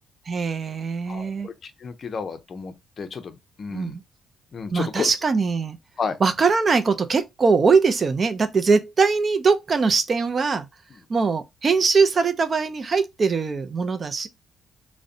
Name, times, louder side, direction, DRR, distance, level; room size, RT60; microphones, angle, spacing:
voice 1, 0.3-1.5 3.7-4.0 4.7-5.8 6.2-10.7 11.1-14.3, right 4 dB, 40° right, 0.4 m, -21 dB
voice 2, 1.1-4.0 4.5-5.1 6.0-6.2, left 5 dB, 45° left, 0.4 m, -32 dB
2.5 x 2.0 x 2.4 m
cardioid pair, 90°, 0 cm